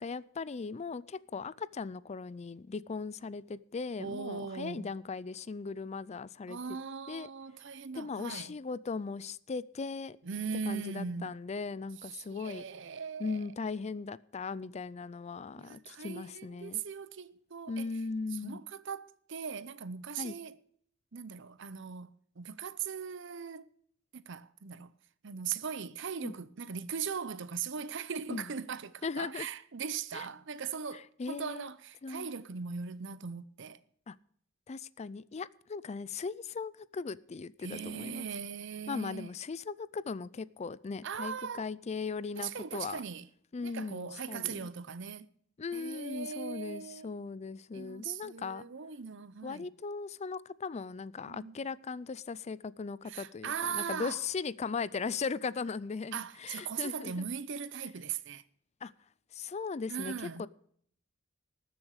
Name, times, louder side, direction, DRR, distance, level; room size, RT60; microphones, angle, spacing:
voice 1, 0.0-6.8 7.1-7.3 7.9-10.2 10.7-12.6 13.2-16.8 17.7-18.6 20.2-20.4 26.2-26.3 28.3-28.5 29.0-29.5 30.1-30.3 30.9-31.7 32.0-32.3 34.1-34.2 34.7-38.3 38.9-43.0 43.5-44.7 45.6-48.7 49.4-57.3 57.8-57.9 58.8-58.9 59.3-60.5, left 4 dB, 35° left, 0.4 m, -38 dB
voice 2, 4.0-4.9 6.5-8.6 10.2-11.3 12.1-13.4 15.6-17.9 18.4-20.6 21.1-23.7 24.1-24.9 25.2-33.8 37.6-39.3 41.0-41.7 42.4-43.3 43.6-45.3 45.7-47.2 47.7-49.7 51.3-51.5 53.1-54.2 56.1-58.4 59.9-60.5, right 6 dB, 65° right, 0.7 m, -39 dB
20.0 x 7.2 x 4.8 m
head